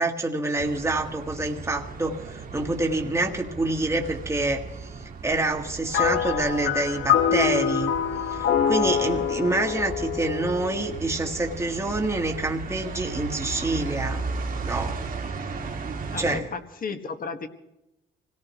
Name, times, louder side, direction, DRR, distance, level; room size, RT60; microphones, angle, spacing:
voice 1, 0.0-4.9 5.2-7.9 8.3-14.2 14.6-15.0 16.2-16.5, right 2 dB, 15° right, 2 dB, 1.6 m, -27 dB
sound 1, 0.6-16.4, right 4 dB, 45° right, 1.9 m, -36 dB
sound 2, 5.9-11.4, left 8 dB, 70° left, 1.2 m, -25 dB
voice 2, 16.1-17.5, left 4 dB, 45° left, 8 dB, 1.6 m, -33 dB
25.0 x 18.0 x 3.1 m, 0.91 s
cardioid pair, 90°, 20 cm